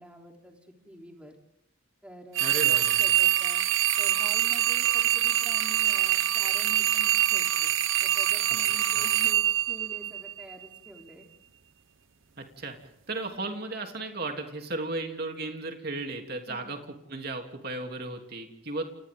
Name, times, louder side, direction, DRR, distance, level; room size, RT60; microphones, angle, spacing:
voice 1, 0.0-1.4 2.0-3.6 4.0-7.7 8.0-11.3 16.5-16.7, equal, 5° right, 1 dB, 3.5 m, -47 dB
sound 1, 2.3-10.5, right 12 dB, 80° right, 0.9 m, -25 dB
voice 2, 2.4-3.0 8.9-9.1 12.4-12.7 13.1-16.8 17.1-18.9, right 2 dB, 50° right, 3 dB, 3.2 m, -35 dB
30.0 x 28.5 x 3.8 m, 0.78 s
head